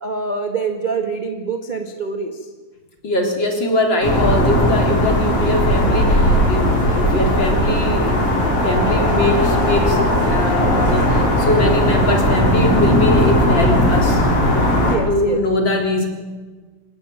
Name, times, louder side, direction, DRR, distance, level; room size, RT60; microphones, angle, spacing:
voice 1, 0.0-2.5 14.8-15.4, right 4 dB, 20° right, 3 dB, 1.4 m, -25 dB
voice 2, 3.0-14.2 15.1-16.1, left 1 dB, 35° left, 1 dB, 4.1 m, -21 dB
sound 1, 4.0-15.0, equal, 65° left, 7.1 m, -17 dB
28.0 x 17.0 x 9.3 m, 1.4 s
omnidirectional pair, 3.6 m